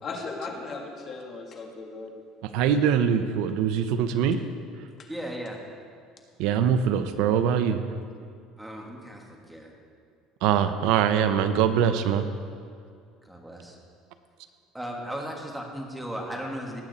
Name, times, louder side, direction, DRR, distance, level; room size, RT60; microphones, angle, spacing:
voice 1, 0.0-2.1 5.0-5.1, left 3 dB, 30° left, 1 dB, 1.6 m, -37 dB
voice 2, 2.4-4.4 6.4-7.8 10.4-12.3, right 8 dB, 70° right, 10 dB, 0.7 m, -23 dB
voice 3, 5.1-5.6 8.6-9.7 13.2-13.8 14.7-16.8, equal, 5° right, 0 dB, 1.6 m, -36 dB
19.0 x 8.7 x 4.1 m, 2.3 s
cardioid pair, 155°, 0 cm